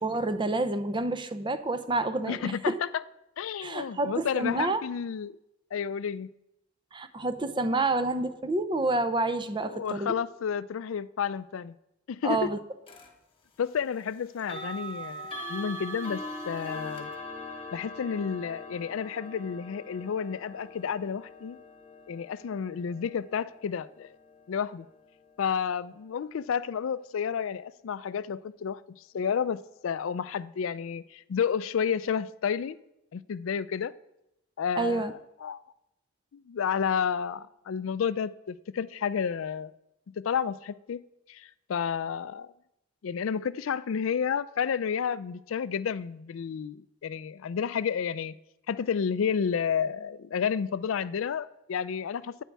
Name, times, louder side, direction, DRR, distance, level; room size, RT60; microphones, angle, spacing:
voice 1, 0.0-2.8 3.6-4.8 6.9-10.1 12.2-12.6 34.8-35.1, right 2 dB, 25° right, 0.6 m, -28 dB
voice 2, 2.3-2.7 3.4-5.4 5.7-6.3 9.6-11.7 12.1-12.5 13.6-17.1 17.7-21.6 22.1-24.2 24.5-24.9 25.4-28.8 29.1-32.8 33.1-33.9 34.6-35.6 36.3-39.7 40.2-41.0 41.3-42.5 43.0-48.3 48.7-52.4, left 7 dB, 70° left, 0.4 m, -31 dB
sound 1, 12.9-13.1 14.4-25.3, left 1 dB, 25° left, 1.4 m, -42 dB
11.0 x 9.2 x 4.6 m
head